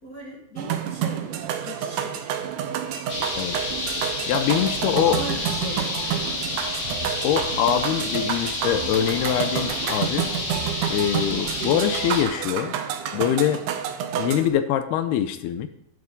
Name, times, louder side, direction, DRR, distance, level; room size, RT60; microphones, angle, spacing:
voice 1, 0.0-2.5 5.0-6.6 11.1-11.6, left 1 dB, 65° left, -2 dB, 0.8 m, -39 dB
sound 1, 0.6-14.5, right 9 dB, 75° right, 1.9 m, -29 dB
sound 2, 3.1-12.2, left 2 dB, 45° left, 1.1 m, -30 dB
voice 2, 4.3-5.2 7.2-10.3 10.9-12.8 13.1-13.6 14.2-15.7, left 10 dB, 85° left, 10 dB, 2.7 m, -23 dB
sound 3, 5.0-12.2, right 2 dB, 45° right, 2.7 m, -41 dB
12.0 x 12.0 x 3.7 m, 0.72 s
omnidirectional pair, 4.6 m